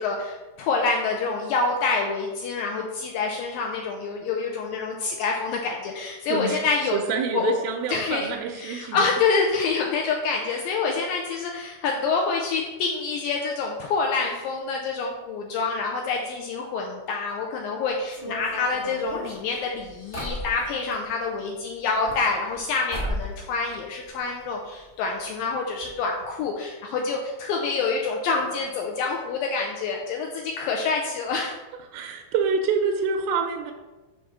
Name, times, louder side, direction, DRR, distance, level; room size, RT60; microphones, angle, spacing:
voice 1, 0.0-7.0 7.3-7.6 7.9-8.3 8.6-31.6, left 4 dB, 85° left, 0 dB, 2.0 m, -27 dB
voice 2, 6.3-9.0 10.5-10.6 31.9-33.7, right 5 dB, 80° right, 2 dB, 2.2 m, -27 dB
sound 1, 18.1-21.0 21.8-22.6 22.9-23.4 23.7-24.5 24.7-24.8 25.0-25.1 25.8-25.9 26.2-26.4, equal, 40° left, 0.7 m, -35 dB
6.3 x 3.3 x 5.7 m, 1.1 s
omnidirectional pair, 4.5 m